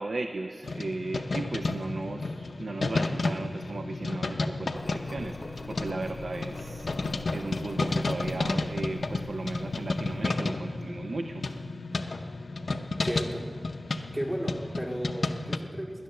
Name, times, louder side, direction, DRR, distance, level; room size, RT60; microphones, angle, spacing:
voice 1, 0.0-11.5, right 2 dB, 80° right, 6 dB, 0.5 m, -36 dB
sound 1, 0.6-15.6, left 3 dB, 90° left, 0.6 m, -32 dB
Engine, 4.8-10.2, left 2 dB, 55° left, 0.7 m, -45 dB
voice 2, 13.0-13.5 14.1-16.0, equal, 45° right, -3 dB, 2.1 m, -34 dB
19.0 x 10.0 x 6.7 m, 2.3 s
wide cardioid pair, 55°, 0 cm